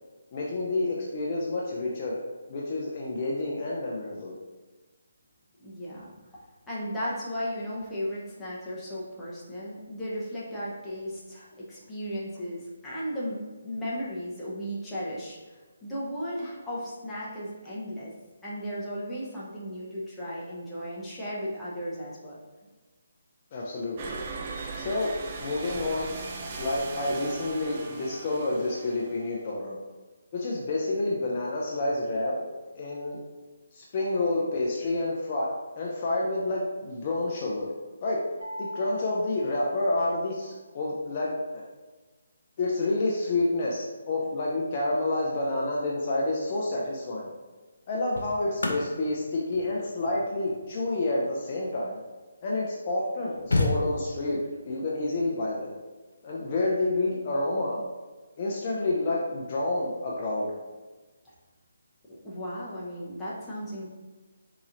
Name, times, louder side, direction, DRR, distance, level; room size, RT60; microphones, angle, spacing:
voice 1, 0.3-2.2 2.5-4.4 23.5-24.2 24.7-26.1 26.5-29.8 30.3-33.2 33.7-35.5 35.7-37.7 38.0-38.2 38.6-41.6 42.6-47.3 47.9-52.0 52.4-55.7 56.2-57.8 58.4-60.5, left 2 dB, 40° left, -4 dB, 0.5 m, -29 dB
voice 2, 5.6-6.1 6.7-15.4 15.8-18.1 18.4-22.4 62.2-63.9, equal, 10° left, -9 dB, 0.8 m, -35 dB
sound 1, 24.0-29.5, right 4 dB, 35° right, 0.4 m, -38 dB
sound 2, 38.4-40.6, equal, 90° right, 0.7 m, -42 dB
sound 3, 46.5-46.8 47.7-52.3 52.9-53.0 53.1-54.4 56.1-56.3, left 2 dB, 85° left, 0.6 m, -32 dB
4.0 x 2.9 x 2.5 m, 1.3 s
figure-of-eight pair, 155°, 0 cm